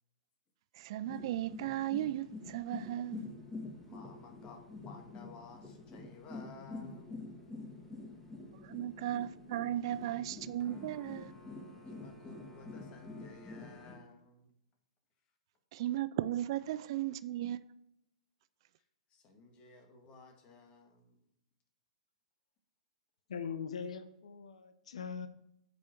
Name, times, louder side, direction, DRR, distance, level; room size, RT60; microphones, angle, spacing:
voice 1, 0.7-3.2 8.5-11.3 15.7-17.6, right 13 dB, 50° right, 0.3 m, -36 dB
sound 1, 1.1-14.0, left 3 dB, 10° left, 1.6 m, -47 dB
voice 2, 3.9-7.3 11.8-14.5 18.8-21.3, left 3 dB, 30° left, 1.8 m, -55 dB
voice 3, 23.3-25.3, left 6 dB, 70° left, 0.8 m, -41 dB
8.3 x 5.3 x 4.6 m
hypercardioid pair, 120°, 4 cm